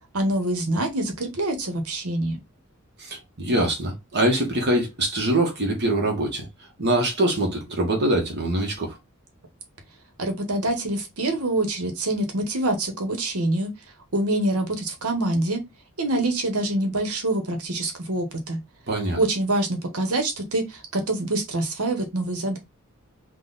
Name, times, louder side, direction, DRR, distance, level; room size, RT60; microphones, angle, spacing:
voice 1, 0.1-2.4 10.2-13.7 14.1-15.6 16.0-18.6 19.2-22.6, right 1 dB, 85° right, 1.2 m, -25 dB
voice 2, 3.0-6.4 6.8-9.0 18.9-19.2, right 1 dB, 50° right, 1.2 m, -23 dB
3.8 x 2.4 x 4.0 m
head